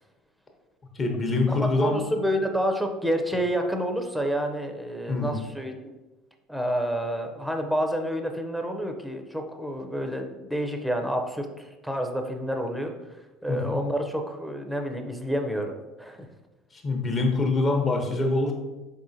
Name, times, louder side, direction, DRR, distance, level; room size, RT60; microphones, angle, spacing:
voice 1, 0.9-2.0 5.1-5.3 13.5-13.8 16.7-18.5, left 3 dB, 35° left, 2 dB, 0.9 m, -25 dB
voice 2, 1.5-5.9 6.5-15.7 16.0-16.3, equal, ahead, 4 dB, 0.6 m, -29 dB
4.3 x 3.6 x 2.7 m, 1.1 s
hypercardioid pair, 75°, 0 cm